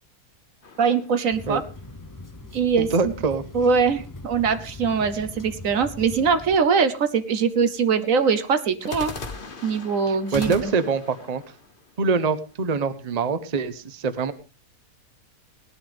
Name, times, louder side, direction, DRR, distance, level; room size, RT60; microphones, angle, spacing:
sound 1, 0.6-2.1 8.8-12.8, left 3 dB, 35° left, 1.3 m, -39 dB
voice 1, 0.8-1.6 2.5-3.1 3.5-9.1 9.6-10.7, right 5 dB, 65° right, 11 dB, 1.2 m, -22 dB
sound 2, 1.3-6.6, left 2 dB, 20° left, 0.5 m, -40 dB
voice 2, 2.8-3.4 10.3-11.4 12.0-14.3, right 4 dB, 30° right, 12 dB, 0.9 m, -24 dB
18.5 x 11.5 x 3.5 m, 0.32 s
omnidirectional pair, 1.6 m